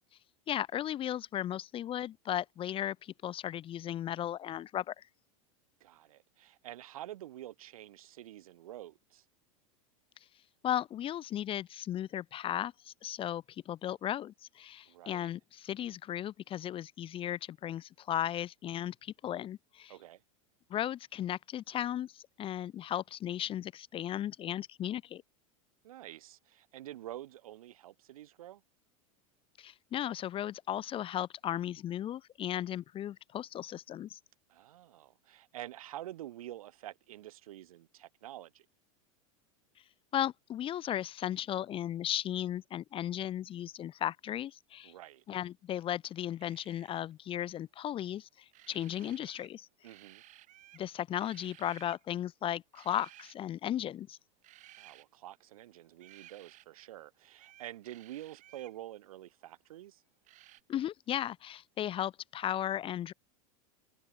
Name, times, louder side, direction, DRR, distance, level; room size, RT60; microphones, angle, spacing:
voice 1, 0.5-5.0 10.6-19.9 20.7-25.2 29.6-34.2 40.1-44.9 45.3-49.7 50.7-54.2 60.7-63.1, left 11 dB, 30° left, 0.8 m, -36 dB
voice 2, 5.8-9.2 14.9-15.3 19.9-20.2 25.8-28.6 34.5-38.6 44.8-45.2 49.8-50.2 54.8-60.0, right 13 dB, 80° right, 3.3 m, -48 dB
sound 1, 46.4-47.1 48.5-49.6 49.8-50.9 51.2-52.0 52.7-53.3 54.4-55.0 56.0-56.7 57.3-58.8 60.2-60.6, right 16 dB, 45° right, 3.7 m, -57 dB
hypercardioid pair, 115°, 18 cm